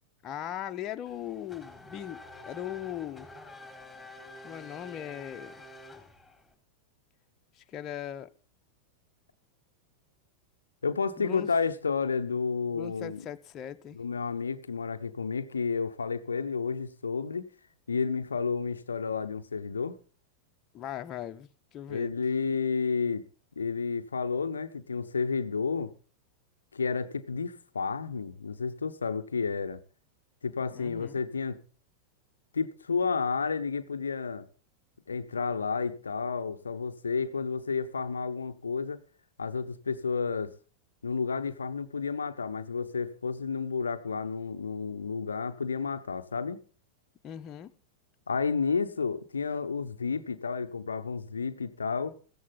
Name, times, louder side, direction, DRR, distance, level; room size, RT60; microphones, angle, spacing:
voice 1, 0.2-3.3 4.4-5.5 7.6-8.3 11.2-11.5 12.7-14.0 20.7-22.1 30.7-31.2 47.2-47.7, left 11 dB, 30° left, 1.0 m, -39 dB
Race car auto racing / Accelerating revving vroom, 1.1-6.5, left 2 dB, 5° left, 3.6 m, -48 dB
voice 2, 10.8-13.2 13.9-17.5 17.9-20.0 21.9-23.2 23.6-25.9 26.7-29.8 30.4-31.6 32.5-34.5 35.1-39.0 39.4-40.5 41.0-46.6 48.3-52.1, left 5 dB, 75° left, 0.8 m, -31 dB
15.5 x 14.0 x 4.0 m
figure-of-eight pair, 90°, 0 cm